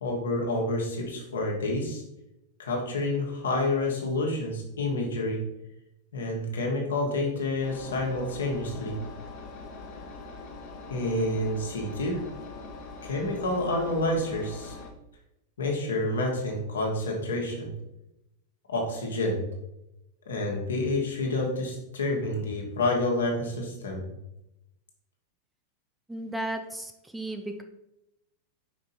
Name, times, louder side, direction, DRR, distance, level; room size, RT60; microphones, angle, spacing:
voice 1, 0.0-2.0 2.6-5.4 6.1-8.9 10.9-12.2 13.0-14.7 15.6-17.7 18.7-19.5 20.3-24.0, left 2 dB, 65° left, 0 dB, 1.6 m, -28 dB
Engine, 7.6-14.9, left 3 dB, 40° left, 1.2 m, -43 dB
voice 2, 26.1-27.6, right 1 dB, 5° right, 5 dB, 0.6 m, -34 dB
5.3 x 5.2 x 4.2 m, 0.87 s
figure-of-eight pair, 90°, 0 cm